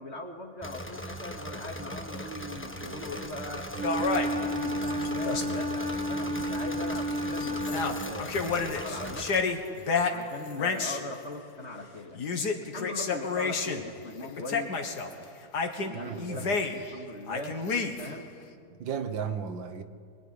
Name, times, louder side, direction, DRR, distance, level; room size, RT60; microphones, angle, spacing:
voice 1, 0.0-3.7 4.0-8.3 8.6-9.6 10.1-12.2 12.7-15.3 15.8-18.3, left 1 dB, 35° left, 2.5 m, -40 dB
Engine / Mechanisms, 0.6-9.4, equal, 5° left, 1.1 m, -39 dB
Wind instrument woodwind instrument, 3.7-8.2, equal, 45° right, 1.7 m, -32 dB
sound 1, 3.8-5.7 6.4-6.5 6.9-7.1 7.4-11.1 12.1-13.9 14.2-15.1 15.5-17.0 17.3-18.2, left 4 dB, 55° left, 2.2 m, -31 dB
voice 2, 15.9-16.6 18.8-19.8, right 7 dB, 70° right, 2.0 m, -35 dB
26.0 x 22.0 x 9.8 m
omnidirectional pair, 2.2 m